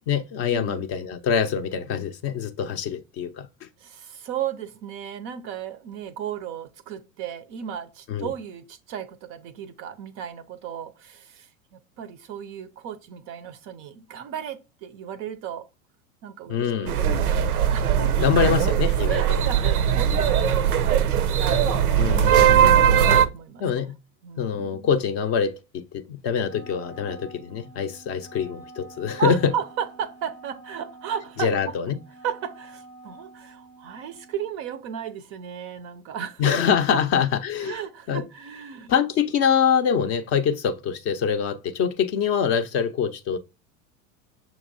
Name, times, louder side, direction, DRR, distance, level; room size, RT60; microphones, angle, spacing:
voice 1, 0.1-3.7 8.1-8.3 16.5-17.0 18.2-19.4 22.0-22.9 23.6-24.0 24.4-29.5 31.4-32.0 36.4-37.8 38.1-38.2 38.9-43.4, left 7 dB, 35° left, 0.5 m, -24 dB
voice 2, 3.8-15.7 16.2-17.4 17.7-18.3 19.1-21.3 21.8-22.3 23.0-23.6 24.2-24.9 29.2-31.8 32.2-37.2 37.6-38.9, right 8 dB, 35° right, 0.4 m, -35 dB
sound 1, 16.9-23.3, right 9 dB, 90° right, 0.5 m, -20 dB
Wind instrument woodwind instrument, 26.4-34.5, right 3 dB, 85° left, 0.7 m, -47 dB
6.2 x 2.9 x 2.5 m
hypercardioid pair, 85°, 43 cm